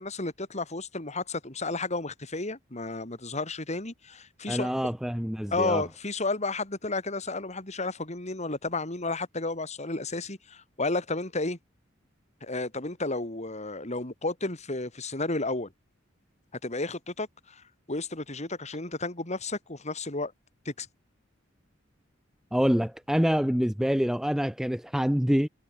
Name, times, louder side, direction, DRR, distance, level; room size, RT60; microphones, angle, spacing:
voice 1, 0.0-4.7 5.5-11.6 12.4-15.7 16.6-20.3 20.6-20.9 23.2-23.3, left 3 dB, 35° left, 3.4 m, -32 dB
voice 2, 4.5-5.8 22.5-25.5, equal, 5° right, 0.5 m, -26 dB
head